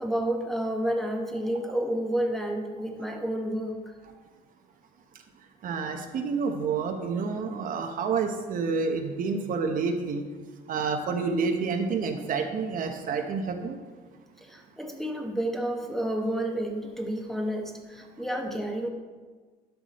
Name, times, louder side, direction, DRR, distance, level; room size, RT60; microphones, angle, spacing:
voice 1, 0.0-3.8 14.4-18.9, right 1 dB, ahead, 1 dB, 1.1 m, -30 dB
voice 2, 5.6-10.2 10.7-13.8, right 5 dB, 55° right, 5 dB, 0.9 m, -29 dB
11.5 x 6.0 x 4.1 m, 1.4 s
cardioid pair, 110°, 17 cm